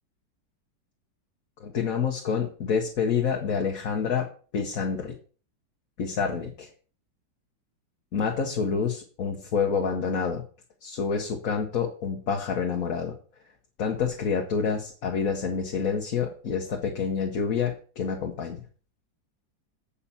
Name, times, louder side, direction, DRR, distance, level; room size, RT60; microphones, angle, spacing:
voice 1, 1.6-4.3 4.5-5.1 6.0-6.7 8.1-10.4 10.8-13.1 13.8-18.6, left 6 dB, 55° left, 1 dB, 1.6 m, -28 dB
8.7 x 5.7 x 5.6 m, 0.39 s
omnidirectional pair, 1.9 m